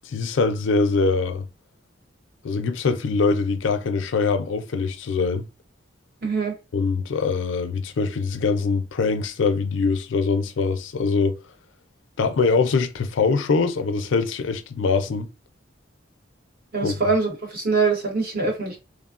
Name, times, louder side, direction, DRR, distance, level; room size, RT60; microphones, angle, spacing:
voice 1, 0.0-1.5 2.4-5.5 6.7-11.4 12.2-15.3 16.8-16.9, left 4 dB, 70° left, 0.4 m, -23 dB
voice 2, 6.2-6.5 16.7-18.8, right 4 dB, 50° right, 1.0 m, -23 dB
3.4 x 2.1 x 2.4 m
head